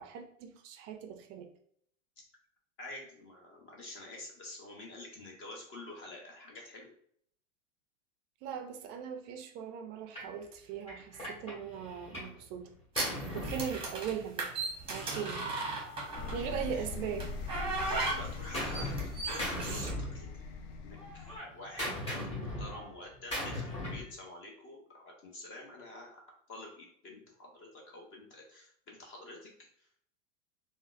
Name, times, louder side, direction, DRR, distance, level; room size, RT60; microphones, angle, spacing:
voice 1, 0.0-1.5 8.4-12.7 13.3-14.5 14.9-15.7 16.3-17.3, right 8 dB, 30° right, 5 dB, 0.4 m, -39 dB
voice 2, 2.8-6.9 15.0-15.4 16.2-16.5 17.9-20.3 20.8-21.3 21.5-22.0 22.3-26.2 26.5-29.5 29.8-29.9, left 2 dB, 30° left, 0 dB, 0.8 m, -48 dB
Gunshot gunfire, 10.2-10.4 10.9-12.4 12.7-14.4 15.3-17.2 17.5-19.1 19.4-20.6 20.9-24.1, left 1 dB, 15° left, 1.3 m, -39 dB
sound 1, 12.9-16.5 17.2-19.9, right 3 dB, 15° right, 0.8 m, -36 dB
sound 2, 16.1-21.4, left 4 dB, 55° left, 0.5 m, -42 dB
3.8 x 2.1 x 2.4 m, 0.65 s
hypercardioid pair, 120°, 38 cm